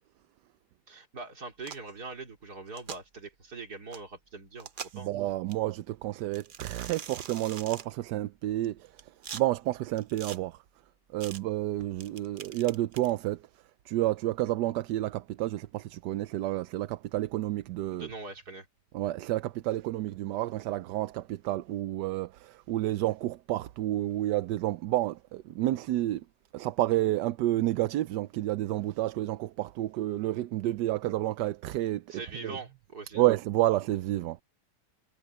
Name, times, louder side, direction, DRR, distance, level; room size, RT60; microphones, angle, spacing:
voice 1, 0.9-5.1 17.9-18.7 32.1-33.2, right 3 dB, 65° right, 4.0 m, -42 dB
sound 1, 1.6-1.9 2.7-3.0 3.9-4.0 4.6-5.1 5.5-5.6 6.3-7.9 8.6-9.4 10.0-10.4 11.2-11.4 12.0-13.1, right 7 dB, 45° right, 0.6 m, -43 dB
voice 2, 4.9-8.9 9.3-10.6 11.1-13.4 13.9-18.1 18.9-26.2 26.5-32.0 32.4-32.6 33.1-34.4, right 15 dB, 85° right, 1.2 m, -30 dB
omnidirectional pair, 1.8 m